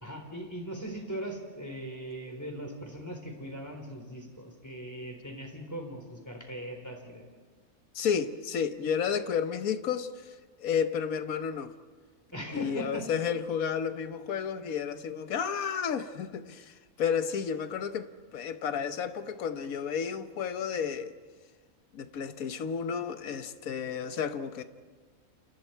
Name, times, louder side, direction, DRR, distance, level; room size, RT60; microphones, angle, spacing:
voice 1, 0.0-7.3 12.3-13.1, right 1 dB, 10° left, 4.0 m, -39 dB
voice 2, 7.9-11.7 12.5-21.1 21.9-24.6, left 7 dB, 75° left, 1.5 m, -32 dB
29.0 x 29.0 x 4.6 m
omnidirectional pair, 1.5 m